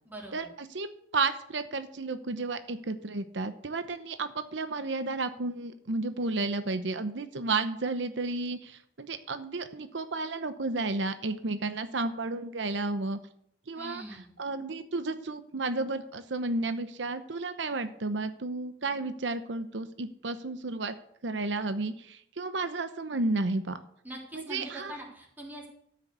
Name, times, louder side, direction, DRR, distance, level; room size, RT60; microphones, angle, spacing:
voice 1, 0.1-0.5 13.8-14.3 24.0-25.7, right 1 dB, 10° right, -2 dB, 3.4 m, -43 dB
voice 2, 1.1-13.2 13.7-14.0 14.4-20.9 21.2-23.8 24.3-24.9, right 3 dB, 80° right, 10 dB, 0.8 m, -32 dB
13.5 x 6.4 x 8.2 m, 0.68 s
head